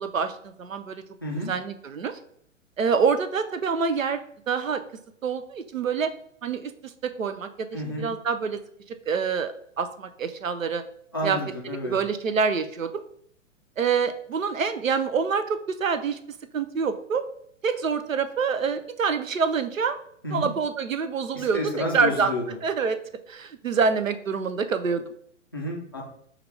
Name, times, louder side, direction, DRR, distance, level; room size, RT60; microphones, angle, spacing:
voice 1, 0.0-1.0 1.5-2.2 2.8-4.8 5.2-6.1 6.4-8.6 8.9-10.8 11.2-11.4 11.8-12.9 13.8-16.2 16.5-17.2 17.6-20.0 20.3-22.3 22.6-23.0 23.3-25.0, right 5 dB, 80° right, 10 dB, 0.5 m, -26 dB
voice 2, 1.2-1.5 7.7-8.1 11.1-12.0 20.2-20.5 21.3-22.6 25.5-26.0, left 1 dB, 20° left, -4 dB, 0.3 m, -30 dB
5.7 x 2.4 x 3.3 m, 0.66 s
figure-of-eight pair, 115°, 39 cm